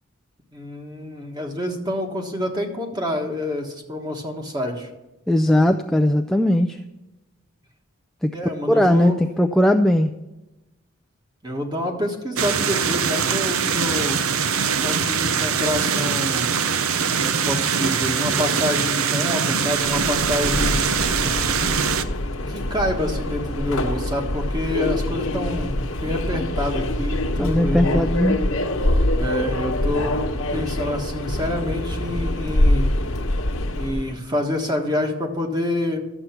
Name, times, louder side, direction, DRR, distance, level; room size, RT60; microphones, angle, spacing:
voice 1, 0.5-4.9 8.3-9.2 11.4-14.2 14.8-16.5 17.1-20.8 22.5-28.0 29.2-30.2 30.5-32.9 33.8-36.0, left 1 dB, 20° right, 3 dB, 1.5 m, -27 dB
voice 2, 5.3-6.8 8.2-8.3 8.7-10.1 27.4-28.4, left 1 dB, ahead, 4 dB, 0.3 m, -18 dB
sound 1, 12.4-22.0, right 6 dB, 85° right, 0.7 m, -22 dB
Subway metro underground, 19.8-34.2, left 1 dB, 85° left, 1.2 m, -24 dB
12.5 x 7.9 x 5.9 m, 1.0 s
head